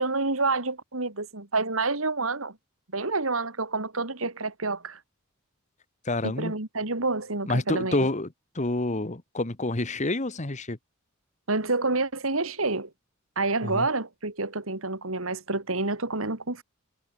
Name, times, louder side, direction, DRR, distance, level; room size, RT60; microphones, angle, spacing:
voice 1, 0.0-2.6 2.9-5.0 6.2-8.1 11.5-12.9 13.4-16.6, right 3 dB, 90° right, 3.5 m, -28 dB
voice 2, 6.0-6.5 7.5-8.3 8.5-10.8 13.6-13.9, left 2 dB, 35° left, 1.5 m, -28 dB
head